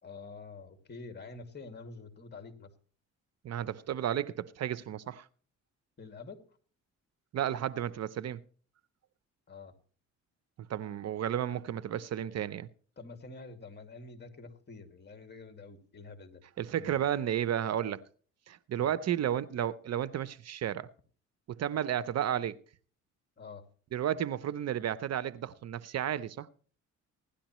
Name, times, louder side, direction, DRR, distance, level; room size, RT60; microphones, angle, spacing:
voice 1, 0.0-2.7 6.0-6.4 9.5-9.7 13.0-16.4 16.8-17.1 18.7-18.9 23.4-23.6, left 4 dB, 35° left, 2.4 m, -47 dB
voice 2, 3.4-5.3 7.3-8.4 10.7-12.7 16.6-18.0 18.5-20.9 21.6-22.6 23.9-26.5, right 10 dB, 60° right, 0.7 m, -32 dB
17.0 x 11.5 x 3.1 m
cardioid pair, 90°, 30 cm